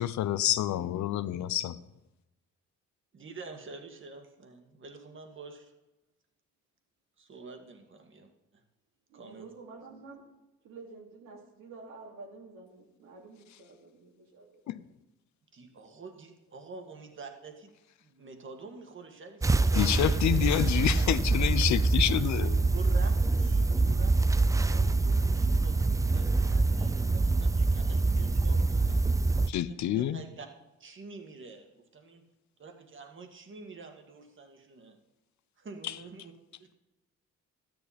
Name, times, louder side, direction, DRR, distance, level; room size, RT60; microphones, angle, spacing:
voice 1, 0.0-1.8 14.7-14.8 19.8-22.7 29.5-30.2, left 12 dB, 70° left, 0.6 m, -28 dB
voice 2, 3.1-5.7 7.2-8.3 9.1-9.5 15.5-17.7 18.0-21.0 22.7-29.0 29.5-30.5 30.8-31.6 31.9-32.2 32.6-35.0 35.6-36.3 36.6-36.7, right 4 dB, 40° right, 1.8 m, -48 dB
voice 3, 9.1-10.3 10.6-14.6, right 3 dB, 85° right, 3.0 m, -49 dB
sound 1, 19.4-29.5, right 3 dB, 10° right, 0.3 m, -25 dB
13.0 x 10.0 x 4.2 m
cardioid pair, 90°, 30 cm